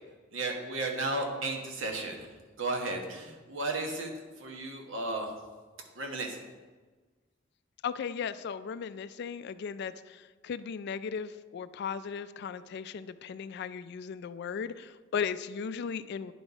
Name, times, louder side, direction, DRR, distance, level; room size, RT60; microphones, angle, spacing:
voice 1, 0.3-2.3 2.6-4.1 4.4-5.3 5.9-6.4, right 2 dB, 80° right, 2 dB, 1.2 m, -34 dB
voice 2, 7.8-16.3, left 6 dB, 60° left, 14 dB, 0.3 m, -36 dB
9.9 x 4.1 x 4.8 m, 1.3 s
head